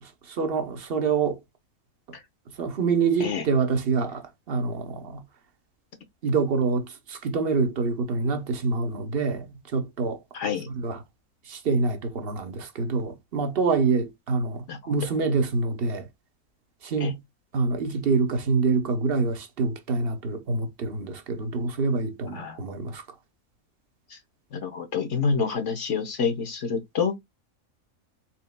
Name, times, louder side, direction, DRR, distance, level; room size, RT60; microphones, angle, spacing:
voice 1, 0.0-1.4 2.6-5.2 6.2-10.2 10.7-11.0 11.5-16.1 16.8-17.2 17.5-23.0, right 4 dB, 50° right, 1.0 m, -26 dB
voice 2, 10.3-10.7 14.7-14.9 17.0-17.1 22.3-22.6 24.1-24.2 24.5-27.2, left 5 dB, 60° left, 1.2 m, -27 dB
4.4 x 3.9 x 2.2 m
omnidirectional pair, 1.5 m